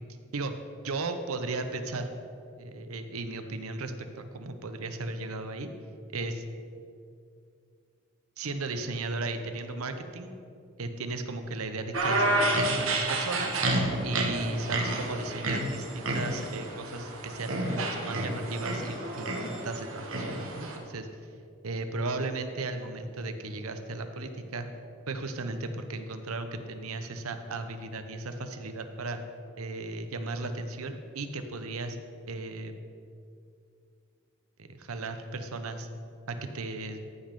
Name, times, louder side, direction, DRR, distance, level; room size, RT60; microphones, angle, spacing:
voice 1, 0.8-2.1 2.6-5.7 6.1-6.4 8.4-10.3 10.8-13.6 14.0-21.1 21.6-24.7 25.1-29.2 29.6-32.0 32.3-32.7 34.6-35.9 36.3-37.0, right 3 dB, 90° right, 8 dB, 0.8 m, -35 dB
sound 1, 11.9-20.8, right 2 dB, 75° right, 1.5 m, -30 dB
14.5 x 5.4 x 5.3 m, 2.4 s
head